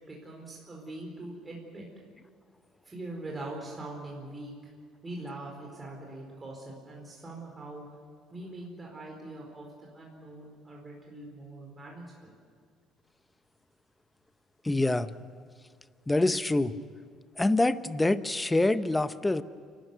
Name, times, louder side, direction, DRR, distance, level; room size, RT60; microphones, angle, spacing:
voice 1, 0.0-1.9 2.8-4.7 5.0-7.8 8.3-12.3, right 2 dB, 20° right, -2 dB, 4.6 m, -42 dB
voice 2, 14.6-15.1 16.1-16.7 17.4-19.4, left 2 dB, 10° left, 13 dB, 0.8 m, -25 dB
28.5 x 13.0 x 9.6 m, 2.1 s
cardioid pair, 100°, 0 cm